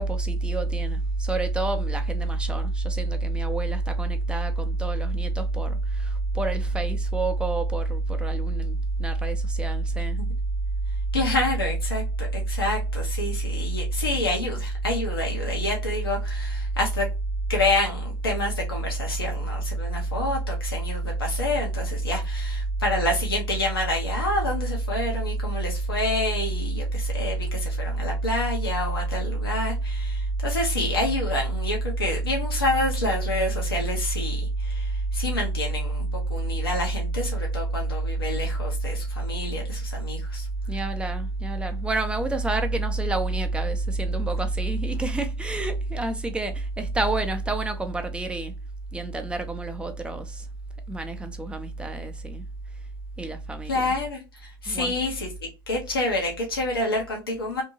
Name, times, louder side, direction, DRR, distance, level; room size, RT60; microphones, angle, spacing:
voice 1, 0.0-10.2 40.7-48.5 48.9-50.5 50.9-52.4 53.2-53.9 54.7-54.9, right 2 dB, 10° right, 0.6 m, -27 dB
voice 2, 11.1-17.0 17.5-40.5 53.7-57.6, left 2 dB, 85° left, 0.9 m, -28 dB
2.8 x 2.6 x 2.8 m
hypercardioid pair, 85°, 12 cm